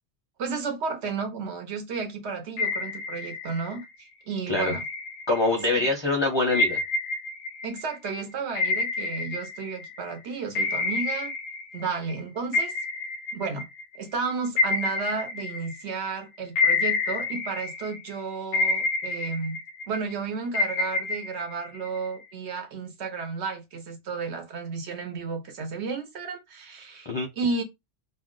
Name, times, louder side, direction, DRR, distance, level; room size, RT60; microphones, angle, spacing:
voice 1, 0.4-4.8 5.7-5.9 7.6-11.3 11.7-12.7 13.3-13.7 14.0-19.6 19.9-27.1 27.4-27.6, right 4 dB, 70° right, 1.1 m, -32 dB
sound 1, 2.6-3.8 4.6-5.7 6.5-10.1 10.5-12.2 12.5-16.1 16.6-18.1 18.5-20.1 20.5-22.2, left 3 dB, 90° left, 0.9 m, -28 dB
voice 2, 5.3-6.8 27.1-27.3, left 2 dB, 35° left, 0.5 m, -24 dB
2.4 x 2.2 x 3.7 m
omnidirectional pair, 1.2 m